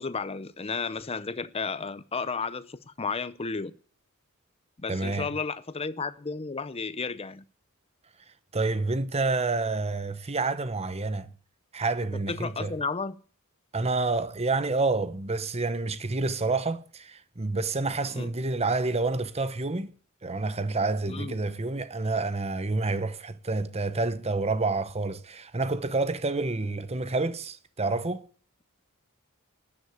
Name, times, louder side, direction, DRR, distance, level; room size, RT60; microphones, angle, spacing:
voice 1, 0.0-3.7 4.8-7.4 12.1-13.2 18.1-18.3 21.1-21.4, left 4 dB, 30° left, 0.7 m, -33 dB
voice 2, 4.9-5.3 8.5-11.3 11.7-12.7 13.7-19.9 20.2-28.2, right 3 dB, 30° right, 1.0 m, -28 dB
13.0 x 9.9 x 8.4 m
head